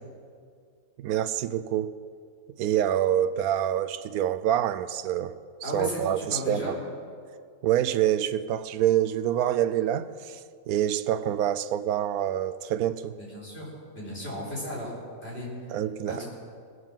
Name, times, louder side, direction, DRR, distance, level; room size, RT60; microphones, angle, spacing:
voice 1, 1.0-2.0 2.6-5.3 5.6-6.6 7.6-10.4 10.7-13.2 15.7-16.2, right 11 dB, 90° right, 13 dB, 1.1 m, -26 dB
voice 2, 5.6-6.8 13.2-14.9 15.2-15.5 16.1-16.2, equal, 45° left, -5 dB, 5.1 m, -35 dB
20.0 x 8.0 x 7.4 m, 2.2 s
omnidirectional pair, 1.5 m